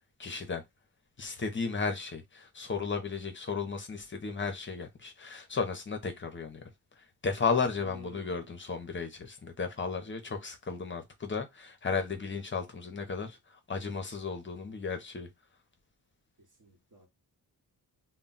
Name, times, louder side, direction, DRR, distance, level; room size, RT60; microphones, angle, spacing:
voice 1, 0.2-0.6 1.2-6.6 7.2-13.4 13.7-15.3, left 5 dB, 30° left, 0.6 m, -34 dB
voice 2, 7.8-8.5 16.4-17.1, left 1 dB, 50° right, 1.0 m, -52 dB
2.2 x 2.1 x 3.7 m
wide cardioid pair, 120°, 39 cm